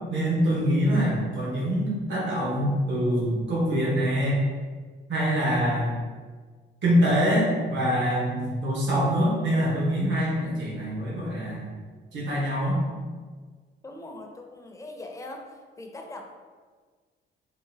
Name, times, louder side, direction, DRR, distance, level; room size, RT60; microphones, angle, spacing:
voice 1, 0.1-4.4 5.1-6.0 6.8-11.7 12.1-12.8, equal, 70° right, -5 dB, 1.1 m, -24 dB
voice 2, 13.8-15.5 15.8-16.2, left 2 dB, 15° left, 2 dB, 0.4 m, -40 dB
3.8 x 2.3 x 2.7 m, 1.5 s
cardioid pair, 90°, 20 cm